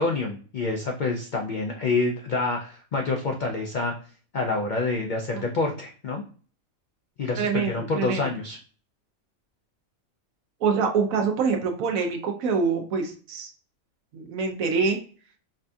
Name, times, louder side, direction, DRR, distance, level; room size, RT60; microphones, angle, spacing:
voice 1, 0.0-3.9 4.3-6.2 7.2-8.6, left 3 dB, 75° left, 2 dB, 0.4 m, -27 dB
voice 2, 7.4-8.3 10.6-13.5 14.1-15.0, right 5 dB, 80° right, 3 dB, 1.1 m, -25 dB
5.0 x 2.3 x 2.5 m, 0.41 s
omnidirectional pair, 1.4 m